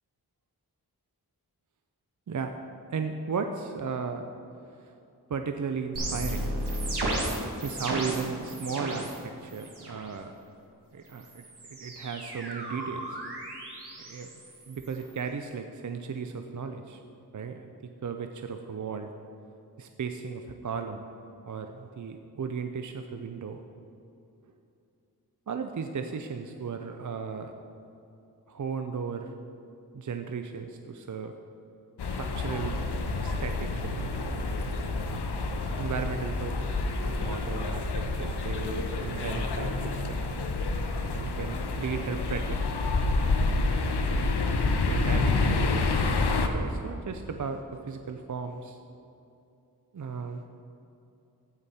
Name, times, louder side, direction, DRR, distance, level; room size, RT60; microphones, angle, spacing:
voice 1, 2.9-4.2 4.8-4.9 5.3-6.5 7.6-10.3 10.9-11.4 11.7-13.2 14.0-14.3 14.7-17.0 17.3-17.7 18.0-19.1 19.8-21.0 21.4-23.6 25.5-27.5 28.5-29.3 29.9-31.3 32.1-32.8 33.2-34.1 35.8-40.2 41.1-42.6 44.9-46.0 46.5-48.8 49.9-50.4, right 5 dB, 50° right, 6 dB, 0.5 m, -35 dB
sound 1, 6.0-9.2 9.5-10.0 11.1-15.2, right 1 dB, 85° right, 1.7 m, -34 dB
sound 2, 32.0-46.5, left 3 dB, 80° left, 0.7 m, -28 dB
15.5 x 5.1 x 4.2 m, 2.7 s
wide cardioid pair, 60°, 39 cm